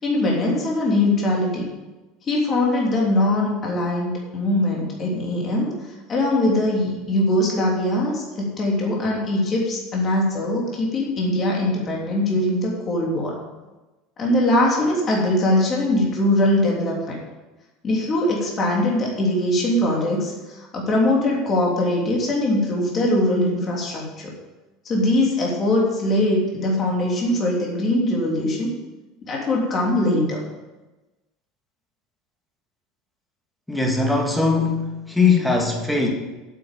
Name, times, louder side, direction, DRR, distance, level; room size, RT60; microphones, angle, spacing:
voice 1, 0.0-1.6 2.3-5.7 6.1-13.4 14.2-17.2 17.8-24.3 24.8-28.7 29.3-30.4, left 1 dB, 25° left, -2 dB, 3.2 m, -21 dB
voice 2, 33.7-36.1, left 4 dB, 5° left, 1 dB, 1.8 m, -20 dB
8.6 x 8.4 x 7.6 m, 1.1 s
cardioid pair, 155°, 0 cm